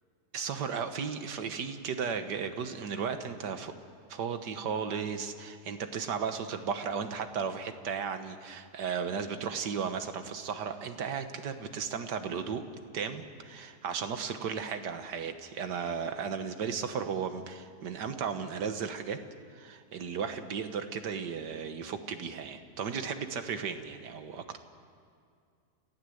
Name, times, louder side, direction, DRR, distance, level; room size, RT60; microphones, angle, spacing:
voice 1, 0.3-3.7 4.1-12.6 12.9-19.2 19.6-24.6, right 6 dB, 90° right, 8 dB, 1.9 m, -35 dB
29.0 x 15.0 x 7.9 m, 2.3 s
omnidirectional pair, 1.8 m